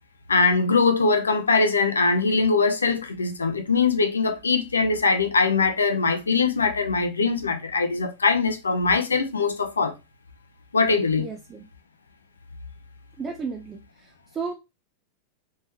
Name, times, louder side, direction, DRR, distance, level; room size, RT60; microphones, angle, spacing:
voice 1, 0.3-9.9 10.7-11.3, left 4 dB, 75° left, 0.6 m, -22 dB
voice 2, 11.2-11.6 13.2-13.8 14.3-14.5, right 5 dB, 20° right, 0.5 m, -32 dB
3.5 x 3.1 x 3.0 m
figure-of-eight pair, 90°, 0 cm